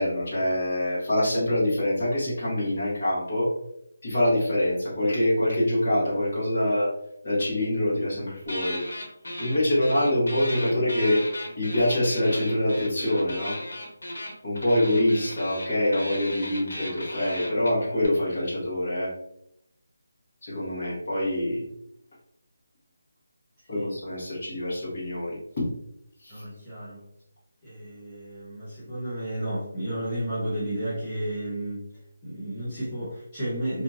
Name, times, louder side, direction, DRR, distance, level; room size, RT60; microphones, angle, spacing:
voice 1, 0.0-3.5 4.0-6.9 7.2-8.8 9.4-11.2 11.6-13.6 14.4-19.1 20.4-21.7 23.7-25.7 26.2-26.4, left 1 dB, 30° left, -8 dB, 1.1 m, -25 dB
sound 1, 8.5-9.6 9.8-18.1, left 1 dB, 85° left, 1.0 m, -36 dB
voice 2, 26.3-27.0 27.6-31.9 32.2-33.8, right 1 dB, 10° left, -13 dB, 0.6 m, -32 dB
2.8 x 2.6 x 2.4 m, 0.78 s
figure-of-eight pair, 180°, 0 cm